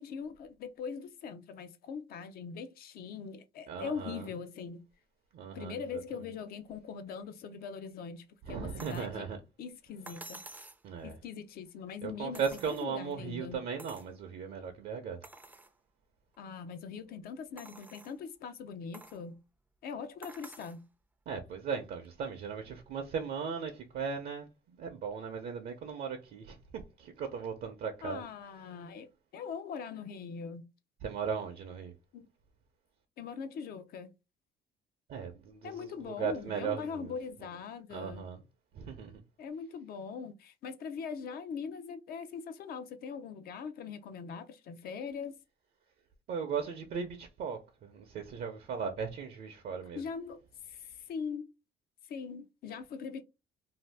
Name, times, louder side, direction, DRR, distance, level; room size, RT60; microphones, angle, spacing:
voice 1, 0.0-4.8 5.5-9.3 9.6-10.4 11.0-13.6 16.4-19.4 19.8-20.8 28.0-30.6 32.1-32.3 33.2-34.1 35.6-38.3 39.4-45.4 49.9-50.4 50.7-51.5 52.1-53.2, left 6 dB, 65° left, 0.6 m, -41 dB
voice 2, 3.7-4.3 5.3-5.8 6.1-6.2 8.4-9.4 10.8-11.2 12.0-15.2 21.3-28.2 31.0-31.9 35.1-37.1 37.9-38.4 38.7-39.2 46.3-50.0, right 6 dB, 65° right, 0.6 m, -37 dB
sound 1, 8.8-9.1 10.1-10.8 12.3-13.1 13.8-14.1 14.6-14.7 15.2-15.7 16.3-16.4 17.6-18.2 18.9-19.2 20.2-20.8 22.0-22.1, right 2 dB, 10° right, 0.4 m, -50 dB
2.7 x 2.4 x 3.3 m
cardioid pair, 110°, 17 cm